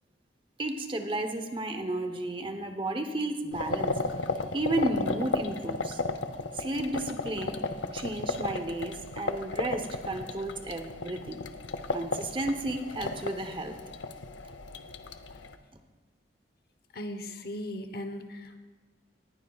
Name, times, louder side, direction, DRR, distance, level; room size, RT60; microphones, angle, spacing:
voice 1, 0.6-3.9 4.5-6.0 6.5-7.6 7.9-11.4 11.9-13.8, right 1 dB, 30° right, 6 dB, 0.9 m, -32 dB
sound 1, 3.5-15.6, left 3 dB, 90° left, 0.7 m, -34 dB
voice 2, 16.9-18.6, left 1 dB, 55° left, 7 dB, 1.0 m, -38 dB
19.0 x 15.5 x 2.4 m, 1.3 s
head